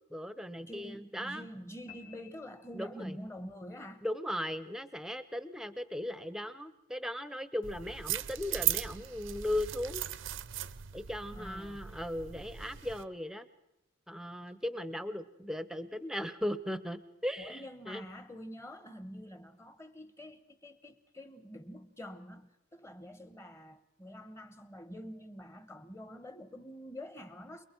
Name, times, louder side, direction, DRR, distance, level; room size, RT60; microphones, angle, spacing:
voice 1, 0.1-1.4 2.7-3.2 4.0-10.0 10.9-13.4 14.1-17.6 17.9-18.0, left 1 dB, 5° right, 0.7 m, -37 dB
voice 2, 0.7-4.0 11.3-11.8 17.4-27.6, equal, 15° left, 1.1 m, -47 dB
sound 1, 1.9-3.4, left 9 dB, 45° left, 3.2 m, -56 dB
sound 2, 7.6-13.0, right 12 dB, 65° right, 0.6 m, -37 dB
28.5 x 21.5 x 4.5 m
head